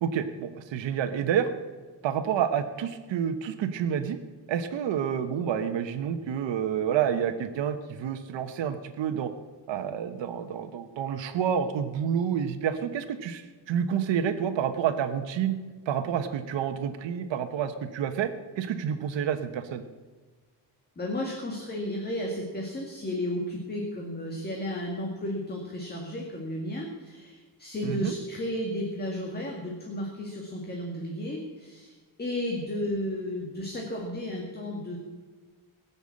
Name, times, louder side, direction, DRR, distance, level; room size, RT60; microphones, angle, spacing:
voice 1, 0.0-1.5 2.0-4.2 4.5-9.3 9.7-15.6 15.8-18.3 18.6-19.8 27.8-28.1, right 8 dB, 90° right, 7 dB, 1.3 m, -29 dB
voice 2, 21.0-35.0, left 1 dB, 20° left, 0 dB, 2.1 m, -33 dB
21.0 x 7.2 x 8.5 m, 1.4 s
wide cardioid pair, 180°, 43 cm